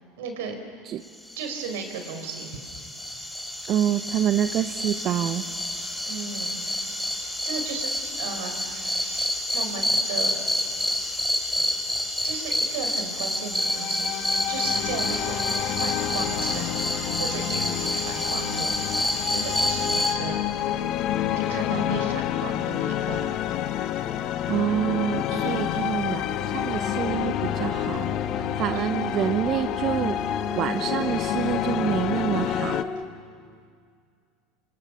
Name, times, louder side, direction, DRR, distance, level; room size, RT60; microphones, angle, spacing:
voice 1, 0.2-0.5 1.4-2.6 3.0-3.3 6.0-6.6 7.4-7.9 8.2-10.4 11.6-11.7 12.2-14.1 14.5-15.4 15.6-16.8 17.2-19.0 19.3-20.5 21.3-23.3 25.3-25.9, right 5 dB, 75° right, 6 dB, 4.8 m, -35 dB
sound 1, 1.3-20.1, left 1 dB, ahead, 5.6 m, -29 dB
voice 2, 3.7-5.5 24.5-32.9, right 10 dB, 50° right, 11 dB, 0.9 m, -27 dB
sound 2, 13.5-32.8, left 11 dB, 55° left, 1.4 m, -29 dB
sound 3, 24.0-33.1, left 3 dB, 20° left, 3.6 m, -36 dB
26.5 x 26.0 x 7.0 m, 2.2 s
hypercardioid pair, 85°, 0 cm